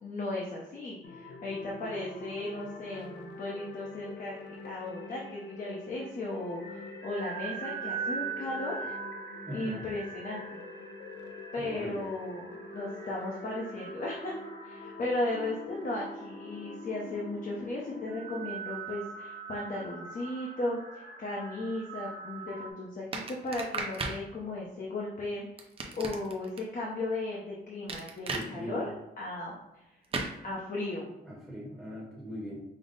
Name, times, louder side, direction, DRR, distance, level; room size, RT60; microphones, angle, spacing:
voice 1, 0.0-4.4 4.6-9.0 9.5-10.6 11.5-25.5 26.0-29.8 30.4-31.2, left 2 dB, 50° left, -3 dB, 0.7 m, -36 dB
sound 1, 1.0-18.5, left 3 dB, 80° left, 0.5 m, -45 dB
sound 2, 6.6-22.7, right 5 dB, 60° right, 1.1 m, -42 dB
voice 2, 9.5-9.8 11.6-12.0 28.3-28.8 31.2-32.6, equal, ahead, -6 dB, 1.0 m, -40 dB
sound 3, 23.1-24.2 25.6-26.6 27.9-28.5 30.1-30.3, right 3 dB, 30° right, 0.5 m, -35 dB
5.3 x 2.0 x 3.9 m, 0.97 s
wide cardioid pair, 160°, 18 cm